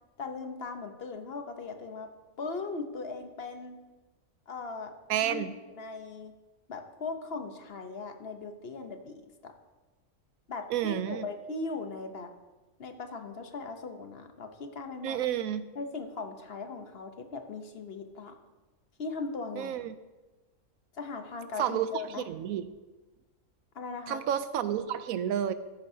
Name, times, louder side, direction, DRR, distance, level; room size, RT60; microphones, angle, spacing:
voice 1, 0.2-2.1 2.4-3.8 4.5-4.9 5.2-5.5 5.8-6.3 6.7-9.5 10.5-12.3 12.8-15.2 15.8-18.4 19.0-19.8 20.9-22.3 23.7-24.2, left 3 dB, 50° left, 6 dB, 1.0 m, -39 dB
voice 2, 5.1-5.5 10.7-11.3 15.0-15.7 19.6-20.0 21.6-22.7 24.1-25.5, right 10 dB, 90° right, 13 dB, 1.0 m, -30 dB
13.5 x 10.5 x 2.7 m, 1.2 s
omnidirectional pair, 1.4 m